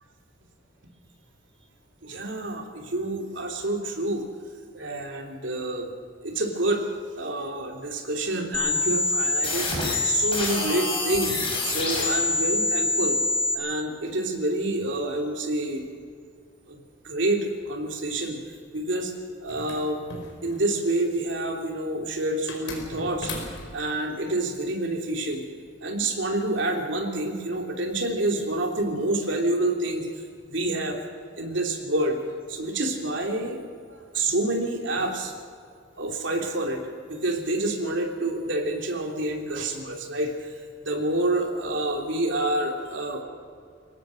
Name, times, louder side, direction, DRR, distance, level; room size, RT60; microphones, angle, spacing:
voice 1, 2.0-4.2 4.7-5.9 6.2-6.9 7.2-11.3 11.6-13.2 13.5-15.8 16.7-16.8 17.0-18.4 18.7-19.1 19.4-20.1 20.4-23.5 23.7-25.4 25.8-30.1 30.5-31.0 31.4-32.2 32.5-33.6 33.9-35.3 36.0-36.8 37.1-40.6 40.8-43.2, right 2 dB, 70° right, 2 dB, 3.1 m, -28 dB
sound 1, 8.5-13.5, left 2 dB, 25° left, 6.0 m, -25 dB
sound 2, 19.5-20.9 22.5-23.9, left 2 dB, 70° left, 4.9 m, -37 dB
23.5 x 18.5 x 6.4 m, 2.2 s
head